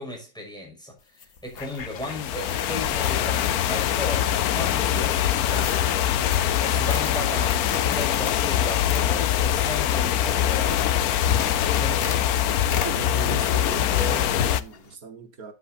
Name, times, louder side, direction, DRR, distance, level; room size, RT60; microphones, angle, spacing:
voice 1, 0.0-6.1 6.6-12.5, left 1 dB, 5° left, 6.0 m, -36 dB
sound 1, 1.0-13.6 13.9-14.6, left 6 dB, 70° left, 1.7 m, -36 dB
sound 2, 1.5-14.9, left 7 dB, 50° left, 1.0 m, -43 dB
sound 3, 1.9-14.6, left 10 dB, 90° left, 1.2 m, -23 dB
voice 2, 12.8-15.5, right 4 dB, 75° right, 2.2 m, -36 dB
13.5 x 8.4 x 2.7 m
omnidirectional pair, 1.5 m